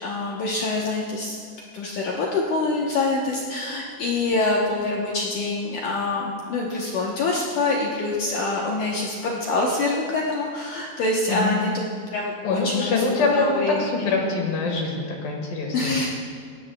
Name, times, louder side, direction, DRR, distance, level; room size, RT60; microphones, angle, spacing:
voice 1, 0.0-1.4 1.7-14.1 15.7-16.1, left 2 dB, 80° left, -3 dB, 1.8 m, -25 dB
voice 2, 12.4-16.1, left 3 dB, 65° left, 1 dB, 2.8 m, -24 dB
18.5 x 16.0 x 2.2 m, 2.2 s
omnidirectional pair, 5.1 m